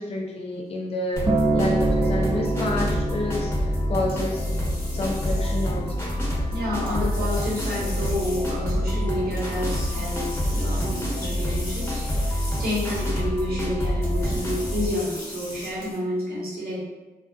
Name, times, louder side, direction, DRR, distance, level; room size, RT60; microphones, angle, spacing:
voice 1, 0.0-4.5 4.9-6.1, left 2 dB, 40° left, -2 dB, 0.5 m, -29 dB
sound 1, 1.1-16.0, left 1 dB, 65° left, 1.0 m, -40 dB
sound 2, 1.2-14.9, equal, 15° left, 1.1 m, -27 dB
Acoustic guitar, 1.3-5.5 6.4-6.5, right 2 dB, 35° right, 0.5 m, -27 dB
voice 2, 6.5-16.8, left 1 dB, 80° right, -7 dB, 1.0 m, -30 dB
2.5 x 2.3 x 2.3 m, 1.2 s
cardioid pair, 50°, 15 cm